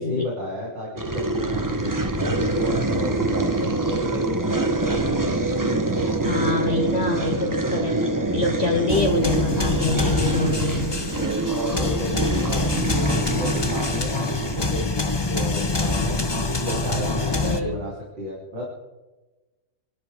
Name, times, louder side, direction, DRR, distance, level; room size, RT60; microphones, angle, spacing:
voice 1, 0.0-5.0 11.2-15.0 15.3-16.2 16.6-18.6, equal, 90° right, -5 dB, 4.2 m, -32 dB
sound 1, 1.0-14.8, right 2 dB, 20° right, 0.6 m, -25 dB
voice 2, 6.2-8.0 8.3-10.9 17.4-17.8, left 3 dB, 40° left, 1 dB, 1.6 m, -26 dB
sound 2, 8.9-17.6, left 2 dB, 20° left, 0.7 m, -25 dB
29.5 x 12.5 x 3.6 m, 1.2 s
omnidirectional pair, 1.9 m